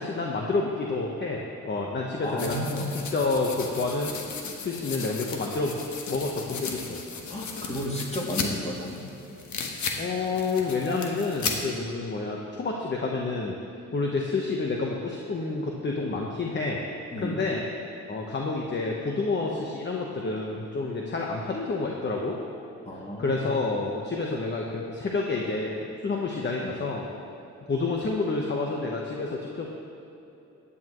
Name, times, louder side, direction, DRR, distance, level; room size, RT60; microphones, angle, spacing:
voice 1, 0.0-2.6 2.9-4.2 4.6-5.8 6.0-7.0 10.0-13.6 13.9-16.8 17.2-17.6 18.1-22.4 23.2-27.0 27.7-29.7, left 3 dB, 35° left, -1 dB, 1.2 m, -29 dB
voice 2, 2.2-2.9 7.3-9.0 17.1-17.4 22.9-23.4, equal, 20° left, -3 dB, 2.5 m, -32 dB
sound 1, 2.4-11.6, left 5 dB, 70° left, 1.3 m, -36 dB
15.5 x 9.9 x 3.1 m, 2.9 s
cardioid pair, 80°, 30 cm